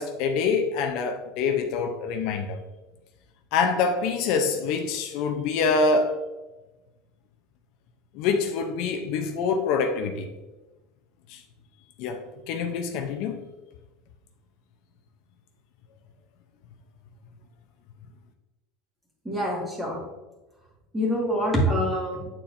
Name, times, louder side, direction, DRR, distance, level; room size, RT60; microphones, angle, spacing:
voice 1, 0.0-2.6 3.5-6.2 8.1-10.3 11.3-11.4 12.0-13.4, left 4 dB, 55° left, 0.6 m, -25 dB
voice 2, 19.2-20.0 20.9-22.3, equal, 10° right, 1.6 m, -25 dB
9.0 x 4.3 x 2.6 m
supercardioid pair, 155°, 0 cm